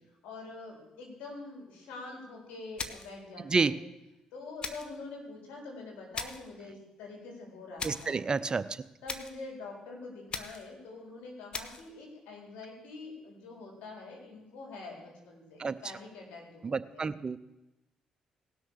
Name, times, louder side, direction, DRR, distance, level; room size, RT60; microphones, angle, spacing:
voice 1, 0.2-3.8 4.3-8.4 9.0-17.1, left 3 dB, 80° left, 0 dB, 4.1 m, -45 dB
sound 1, 2.8-3.2 4.6-5.0 6.1-6.5 7.8-8.2 9.1-9.4 10.3-10.7 11.5-11.9, left 4 dB, 45° left, 1.2 m, -39 dB
voice 2, 7.8-8.6 15.6-15.7 16.6-17.4, right 4 dB, 35° right, 15 dB, 0.6 m, -29 dB
18.0 x 6.4 x 6.5 m, 0.97 s
supercardioid pair, 60°, 2 cm